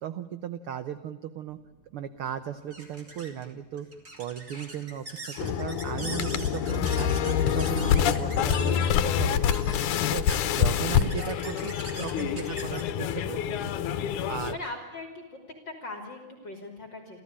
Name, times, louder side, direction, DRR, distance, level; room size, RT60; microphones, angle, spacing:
voice 1, 0.0-1.6 1.9-3.9 4.2-9.7 10.1-10.3 10.5-13.7 14.3-14.6, right 10 dB, 75° right, 12 dB, 1.2 m, -36 dB
sound 1, 1.6-14.5, right 1 dB, 25° right, 3.6 m, -43 dB
sound 2, 5.4-14.5, left 9 dB, 80° left, 2.4 m, -26 dB
voice 2, 10.5-11.6 12.1-12.7 14.5-15.4 15.7-17.2, left 2 dB, 35° left, 4 dB, 3.3 m, -41 dB
29.5 x 14.0 x 8.7 m, 1.3 s
omnidirectional pair, 3.6 m